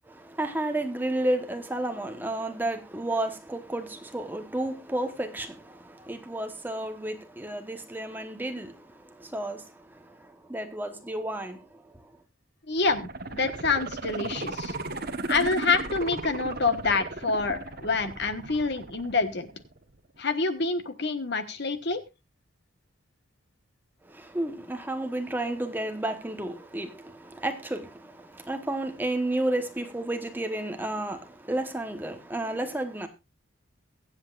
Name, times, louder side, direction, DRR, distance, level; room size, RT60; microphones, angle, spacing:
voice 1, 0.1-12.1 24.0-33.1, right 1 dB, 10° right, 1.1 m, -32 dB
voice 2, 12.7-14.7 15.3-19.5 20.2-22.0, left 4 dB, 50° left, 1.3 m, -27 dB
sound 1, 12.8-19.8 20.2-20.3, right 3 dB, 45° right, 1.1 m, -36 dB
22.5 x 8.1 x 2.5 m
head